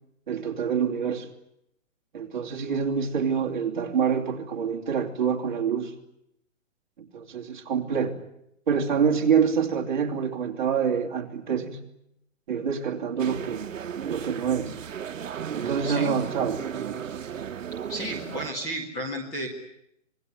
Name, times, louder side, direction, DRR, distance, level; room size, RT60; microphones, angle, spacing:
voice 1, 0.3-1.3 2.1-5.9 7.0-8.2 8.7-11.8 12.5-13.6 14.1-14.8 15.5-17.0, right 7 dB, 40° right, 2 dB, 3.0 m, -26 dB
sound 1, 13.2-18.5, right 8 dB, 80° right, 1.1 m, -34 dB
voice 2, 15.8-16.2 17.9-19.5, equal, 10° left, 1 dB, 1.8 m, -32 dB
26.5 x 20.5 x 9.6 m, 0.78 s
hypercardioid pair, 175°, 39 cm